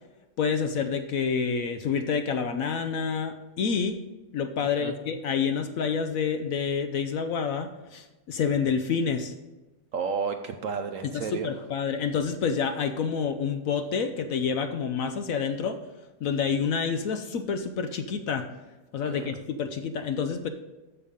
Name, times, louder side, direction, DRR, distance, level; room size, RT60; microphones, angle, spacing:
voice 1, 0.4-4.0 4.3-9.3 11.1-15.8 16.2-18.5 18.9-20.5, left 6 dB, 65° left, 8 dB, 0.9 m, -28 dB
voice 2, 9.9-11.5 19.0-19.3, right 5 dB, 65° right, 6 dB, 0.8 m, -32 dB
13.5 x 5.5 x 3.6 m, 1.1 s
omnidirectional pair, 1.8 m